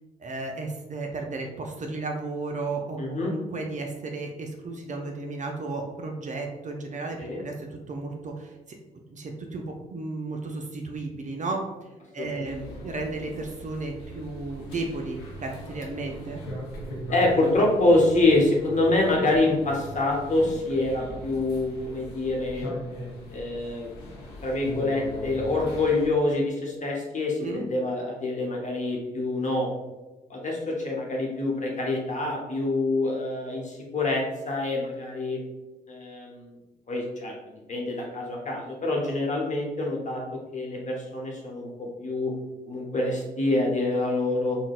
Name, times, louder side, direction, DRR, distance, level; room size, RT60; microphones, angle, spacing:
voice 1, 0.2-8.6 9.1-11.7 12.1-16.4 27.4-27.7, right 3 dB, 40° right, 2 dB, 0.5 m, -34 dB
voice 2, 3.0-3.3 7.2-7.4 12.2-12.4 17.1-22.8 23.3-23.9 24.4-29.7 30.3-35.4 35.9-36.5 36.9-42.3 42.7-44.6, left 2 dB, 35° left, -2 dB, 1.0 m, -26 dB
sound 1, 12.4-26.1, equal, 85° left, 0.6 m, -40 dB
3.8 x 2.1 x 2.4 m, 1.1 s
hypercardioid pair, 40°, 20 cm